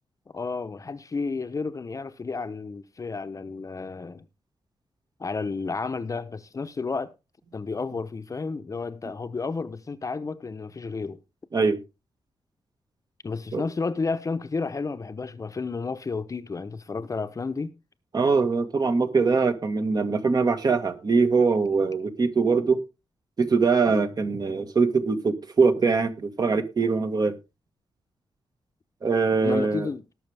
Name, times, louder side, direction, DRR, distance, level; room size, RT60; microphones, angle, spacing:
voice 1, 0.3-4.2 5.2-7.1 7.5-11.2 13.2-17.7 23.9-24.1 29.3-30.0, left 4 dB, 35° left, 0.9 m, -31 dB
voice 2, 18.1-22.8 23.4-27.4 29.0-29.9, right 4 dB, 45° right, 1.8 m, -22 dB
19.0 x 6.4 x 3.5 m
cardioid pair, 95°, 9 cm